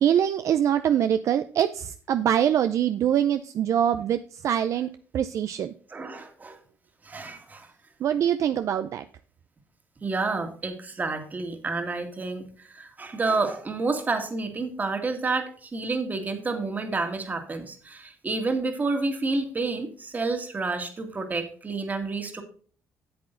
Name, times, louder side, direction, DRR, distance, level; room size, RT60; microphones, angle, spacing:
voice 1, 0.0-5.7 8.0-9.0, right 9 dB, 60° right, 10 dB, 0.5 m, -24 dB
voice 2, 5.9-6.6 7.0-7.7 10.0-22.4, right 3 dB, 30° right, 6 dB, 2.0 m, -29 dB
8.7 x 7.7 x 3.8 m, 0.44 s
cardioid pair, 100°, 6 cm